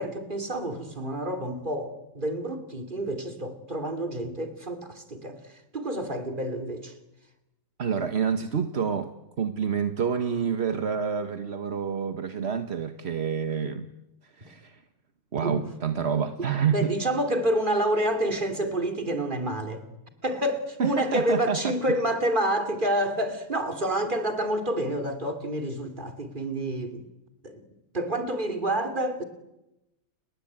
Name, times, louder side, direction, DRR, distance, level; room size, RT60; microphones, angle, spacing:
voice 1, 0.0-7.0 15.4-15.6 16.7-19.8 20.2-27.0 27.4-27.6 27.9-29.2, right 1 dB, 20° right, 3.1 m, -28 dB
voice 2, 7.8-13.9 14.2-14.8 15.3-16.9 20.8-21.8, right 7 dB, 35° right, 1.2 m, -28 dB
30.0 x 22.0 x 8.9 m
omnidirectional pair, 2.3 m